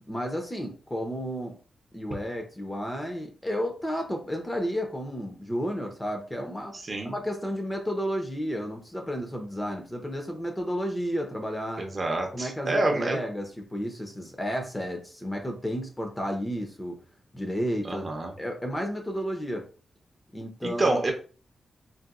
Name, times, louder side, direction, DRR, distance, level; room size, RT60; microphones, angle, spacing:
voice 1, 0.1-1.6 1.9-6.8 7.0-11.9 12.3-17.0 17.3-18.0 18.4-19.7 20.3-21.0, equal, 15° left, 3 dB, 0.6 m, -32 dB
voice 2, 6.7-7.1 11.8-13.2 17.8-18.3 20.6-21.1, right 2 dB, 35° right, 2 dB, 0.6 m, -27 dB
3.9 x 2.1 x 2.3 m, 0.38 s
wide cardioid pair, 125°, 0 cm